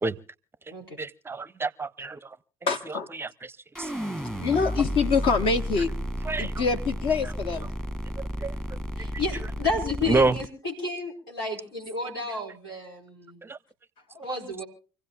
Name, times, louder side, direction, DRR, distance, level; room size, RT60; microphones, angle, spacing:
voice 1, 1.0-2.2 3.2-3.3 3.8-3.9 6.3-6.5 8.4-8.5 10.1-10.3 13.4-13.6, right 3 dB, 20° right, 0.6 m, -27 dB
voice 2, 2.7-3.1 4.4-5.9 6.4-7.7, left 5 dB, 50° left, 1.0 m, -25 dB
sound 1, 3.7-10.5, equal, 5° left, 1.3 m, -32 dB
voice 3, 9.0-13.4 14.1-14.6, left 3 dB, 80° left, 4.6 m, -32 dB
27.0 x 16.0 x 2.4 m
figure-of-eight pair, 55°, 12 cm